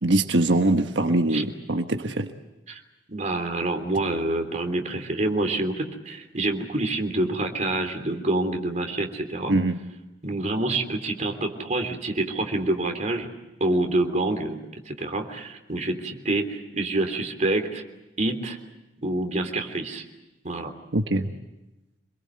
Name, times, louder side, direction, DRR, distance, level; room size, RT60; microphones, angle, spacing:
voice 1, 0.0-2.3 9.5-9.8 20.9-21.3, right 2 dB, 90° right, 5 dB, 1.4 m, -22 dB
voice 2, 3.1-9.6 10.2-13.3 13.6-17.8 18.2-18.6 19.0-20.0 20.4-20.7, right 2 dB, 40° right, 4 dB, 3.4 m, -27 dB
28.0 x 22.0 x 7.8 m, 1.0 s
head